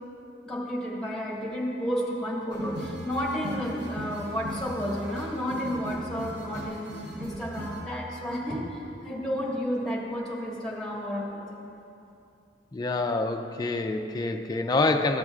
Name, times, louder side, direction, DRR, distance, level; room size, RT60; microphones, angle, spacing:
voice 1, 0.4-11.4, equal, 5° left, -5 dB, 1.5 m, -32 dB
sound 1, 2.5-7.9, right 1 dB, 70° right, 0.9 m, -38 dB
voice 2, 12.7-15.2, left 3 dB, 20° left, 5 dB, 0.3 m, -26 dB
13.5 x 7.6 x 2.4 m, 2.7 s
head